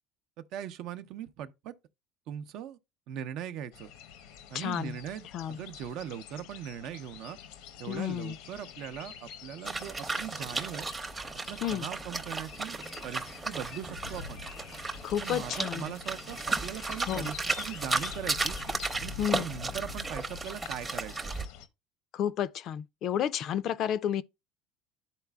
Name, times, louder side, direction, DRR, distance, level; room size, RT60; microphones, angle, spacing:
voice 1, 0.5-1.7 2.3-2.8 3.1-3.9 4.5-7.4 7.8-10.9 11.5-12.8 13.0-14.4 15.2-18.6 19.0-21.3, right 9 dB, 60° right, 0.6 m, -40 dB
sound 1, 3.7-21.7, left 7 dB, 80° left, 0.7 m, -47 dB
voice 2, 4.5-5.0 5.3-5.6 7.9-8.4 11.6-11.9 15.0-15.9 17.1-17.3 19.2-19.5 22.1-24.2, left 10 dB, 50° left, 0.4 m, -31 dB
sound 2, 9.6-21.5, right 3 dB, 15° right, 0.8 m, -35 dB
11.5 x 4.1 x 2.3 m
cardioid pair, 125°, 0 cm